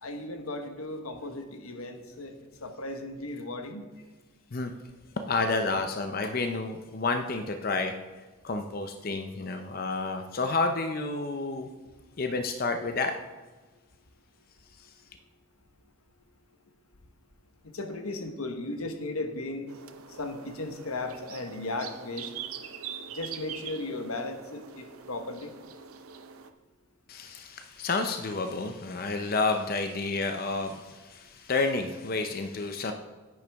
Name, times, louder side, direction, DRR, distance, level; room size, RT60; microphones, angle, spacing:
voice 1, 0.0-3.9 17.7-19.7 20.1-22.3 23.1-25.5, left 2 dB, 90° left, 6 dB, 1.1 m, -36 dB
voice 2, 5.3-7.9 8.4-11.7 12.2-13.1 27.1-32.9, left 3 dB, 45° left, 6 dB, 0.6 m, -30 dB
sound 1, 19.7-26.5, right 7 dB, 90° right, 0.7 m, -43 dB
10.5 x 9.4 x 3.5 m, 1.3 s
head